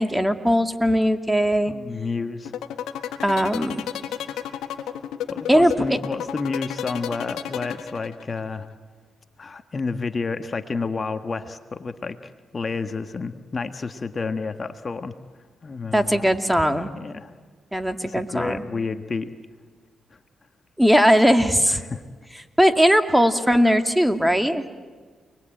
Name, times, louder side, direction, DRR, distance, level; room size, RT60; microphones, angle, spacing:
voice 1, 0.0-1.7 3.2-3.8 5.5-6.0 15.9-16.9 17.7-18.6 20.8-21.8 22.6-24.6, equal, 5° right, 7 dB, 2.3 m, -19 dB
voice 2, 1.7-2.5 5.3-8.7 9.4-15.2 15.6-16.3 16.9-17.3 18.0-19.3 20.1-20.2 21.7-22.0, left 4 dB, 45° left, 8 dB, 1.4 m, -30 dB
sound 1, 2.5-8.4, left 10 dB, 85° left, 1.6 m, -31 dB
29.5 x 21.0 x 9.1 m, 1.5 s
supercardioid pair, 55°, 0 cm